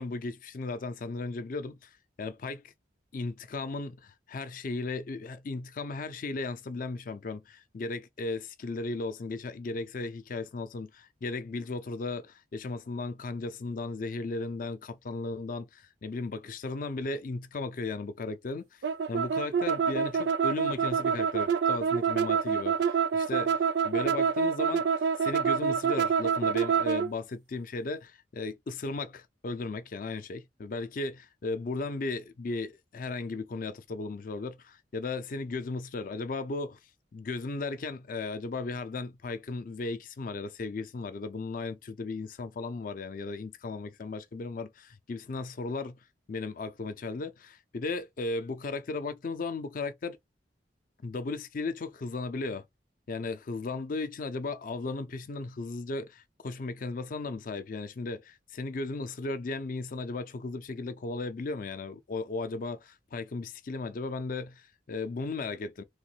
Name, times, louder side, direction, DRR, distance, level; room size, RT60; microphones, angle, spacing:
voice 1, 0.0-2.7 3.1-23.6 23.8-24.9 25.1-36.8 37.1-50.2 51.0-52.6 53.1-65.8, left 3 dB, 50° left, 0.4 m, -36 dB
sound 1, 18.8-27.1, right 6 dB, 70° right, 0.3 m, -26 dB
3.0 x 2.4 x 3.0 m
head